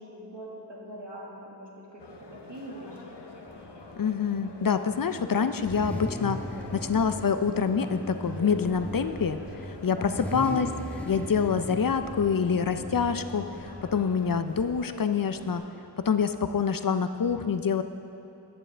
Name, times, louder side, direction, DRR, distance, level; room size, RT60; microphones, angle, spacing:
voice 1, 0.0-3.1 9.9-10.3, right 1 dB, 80° right, -3 dB, 1.8 m, -43 dB
sound 1, 2.0-15.7, left 3 dB, 75° left, 0.9 m, -46 dB
Car / Idling / Accelerating revving vroom, 3.5-15.6, equal, 5° left, 1.2 m, -39 dB
voice 2, 4.0-6.4 6.7-9.4 9.8-10.7 11.1-13.4 13.9-15.6 16.0-17.8, left 6 dB, 55° left, 10 dB, 0.5 m, -26 dB
14.5 x 8.8 x 3.4 m, 3.0 s
wide cardioid pair, 45°, 42 cm